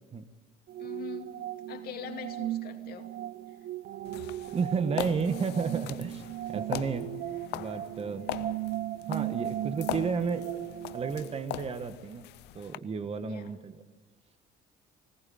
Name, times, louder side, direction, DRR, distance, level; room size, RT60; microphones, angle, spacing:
sound 1, 0.7-11.4, right 13 dB, 65° right, 0.7 m, -37 dB
voice 1, 0.8-1.4 1.7-3.1 3.5-3.6 13.2-13.6, left 10 dB, 65° left, 4 dB, 2.6 m, -43 dB
sound 2, 4.0-12.8, left 16 dB, 85° left, 0.6 m, -41 dB
voice 2, 4.5-6.2 6.5-7.1 7.5-8.3 9.1-10.5 10.9-12.3 12.5-13.8, right 5 dB, 35° right, 10 dB, 1.3 m, -32 dB
19.5 x 18.0 x 8.6 m, 1.3 s
cardioid pair, 110°, 17 cm